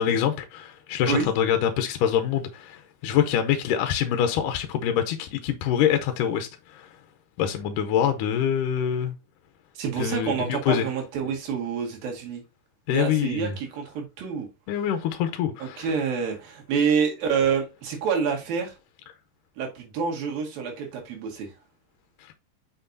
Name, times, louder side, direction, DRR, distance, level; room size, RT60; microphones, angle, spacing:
voice 1, 0.0-6.9 7.4-9.1 10.0-10.9 12.9-13.5 14.7-15.9, left 9 dB, 80° left, 2.1 m, -25 dB
voice 2, 9.8-12.4 12.9-14.5 15.6-18.7 19.6-21.5, right 6 dB, 85° right, 3.7 m, -27 dB
6.4 x 5.9 x 2.6 m
omnidirectional pair, 4.1 m